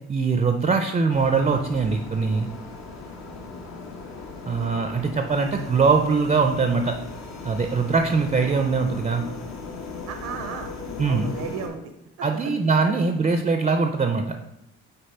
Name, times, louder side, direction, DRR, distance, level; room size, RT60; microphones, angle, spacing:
voice 1, 0.1-2.5 4.5-6.9 7.4-9.2 11.0-11.3 12.2-14.4, right 4 dB, 20° right, 5 dB, 0.4 m, -22 dB
sound 1, 1.1-11.7, left 3 dB, 65° left, 1.1 m, -38 dB
voice 2, 10.1-10.7 11.1-12.3 12.8-13.0, right 7 dB, 70° right, 5 dB, 0.6 m, -35 dB
5.2 x 4.2 x 4.3 m, 0.82 s
cardioid pair, 90°, 30 cm